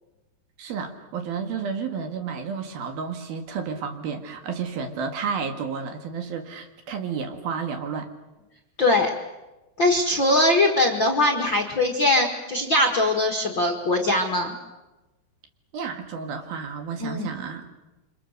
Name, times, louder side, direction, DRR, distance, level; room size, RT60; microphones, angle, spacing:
voice 1, 0.6-8.1 15.7-17.7, right 6 dB, 65° right, 6 dB, 3.5 m, -31 dB
voice 2, 8.8-9.1 9.8-14.5 17.0-17.3, left 1 dB, 45° left, 0 dB, 1.7 m, -21 dB
28.5 x 26.0 x 6.6 m, 1.1 s
omnidirectional pair, 4.9 m